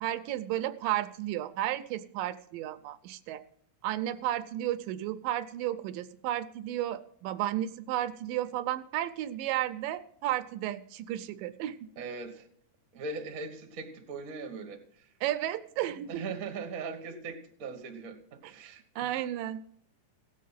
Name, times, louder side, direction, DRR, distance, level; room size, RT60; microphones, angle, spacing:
voice 1, 0.0-3.4 3.8-11.8 15.2-16.2 18.4-19.6, right 13 dB, 80° right, 2.2 m, -33 dB
voice 2, 12.0-12.5 12.9-14.8 16.1-18.8, right 4 dB, 55° right, 0.9 m, -39 dB
16.5 x 7.4 x 5.7 m
omnidirectional pair, 4.0 m